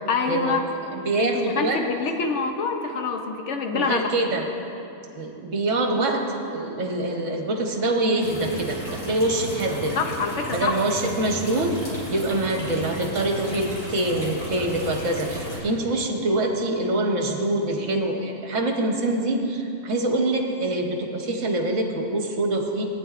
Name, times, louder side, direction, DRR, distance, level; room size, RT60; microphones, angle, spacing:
voice 1, 0.1-0.7 1.2-4.1 10.0-10.8, left 4 dB, 60° left, 5 dB, 1.0 m, -26 dB
voice 2, 0.9-1.8 3.7-4.4 5.2-10.0 10.5-11.7 12.1-22.8, right 2 dB, 60° right, 2 dB, 1.4 m, -25 dB
sound 1, 8.2-15.6, equal, 30° left, 2.3 m, -34 dB
18.5 x 9.5 x 2.5 m, 2.8 s
omnidirectional pair, 1.5 m